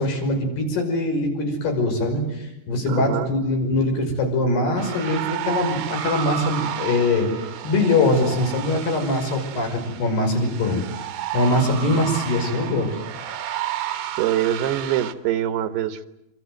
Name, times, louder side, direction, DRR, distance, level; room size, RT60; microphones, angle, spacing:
voice 1, 0.0-11.1 11.3-13.0, left 2 dB, 80° left, 3 dB, 7.8 m, -22 dB
voice 2, 2.9-3.3 14.2-16.1, right 11 dB, 80° right, 11 dB, 3.2 m, -24 dB
sound 1, 4.8-15.1, right 10 dB, 65° right, 2.4 m, -32 dB
28.0 x 25.0 x 7.9 m, 0.84 s
omnidirectional pair, 4.6 m